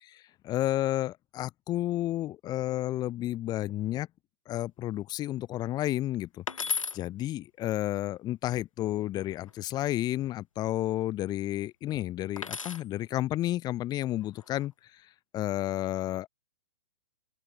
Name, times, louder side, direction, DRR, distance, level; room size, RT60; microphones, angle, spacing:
voice 1, 0.0-4.1 4.5-15.1 15.3-16.3, left 14 dB, 25° left, 2.2 m, -31 dB
sound 1, 6.5-7.0 9.2-9.8 12.4-12.9 14.2-14.7, left 5 dB, 90° left, 3.6 m, -34 dB
open air
hypercardioid pair, 130°, 16 cm